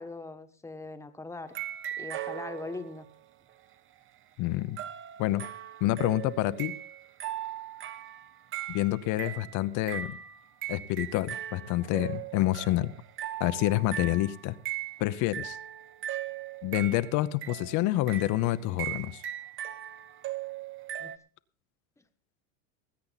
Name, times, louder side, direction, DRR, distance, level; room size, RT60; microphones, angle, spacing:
voice 1, 0.0-1.5 2.0-3.1 21.0-21.1, left 3 dB, 5° left, 8 dB, 1.3 m, -40 dB
sound 1, 1.5-3.1 4.8-21.2, right 12 dB, 30° right, 0.7 m, -39 dB
voice 2, 4.4-4.8 5.2-5.4 5.8-6.7 8.7-10.2 10.7-12.9 13.4-14.6 15.0-15.6 16.6-19.2, left 16 dB, 45° left, 14 dB, 0.8 m, -28 dB
20.0 x 8.6 x 4.1 m, 0.43 s
supercardioid pair, 115°, 40 cm